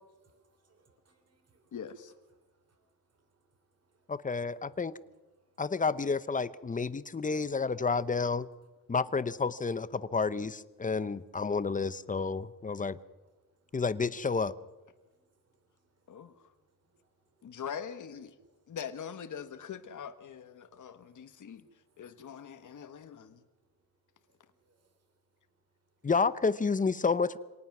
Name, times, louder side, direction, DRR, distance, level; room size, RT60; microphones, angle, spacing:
voice 1, 0.2-1.7 2.4-4.1 4.4-4.7 5.4-5.6 11.3-11.5 11.8-12.3 12.7-12.8 13.5-13.8 15.0-17.5 18.5-18.8 20.6-22.0 22.6-22.7 24.3-24.9, right 3 dB, 45° right, 7 dB, 3.3 m, -72 dB
voice 2, 1.7-2.1 16.1-16.5 17.4-18.4 18.7-21.7 22.0-23.4, left 7 dB, 60° left, 8 dB, 1.4 m, -43 dB
voice 3, 4.1-4.9 5.6-8.5 8.9-13.0 13.7-14.5 26.0-27.4, left 4 dB, 25° left, 15 dB, 0.8 m, -30 dB
25.5 x 18.5 x 6.1 m, 1.2 s
cardioid pair, 105°, 34 cm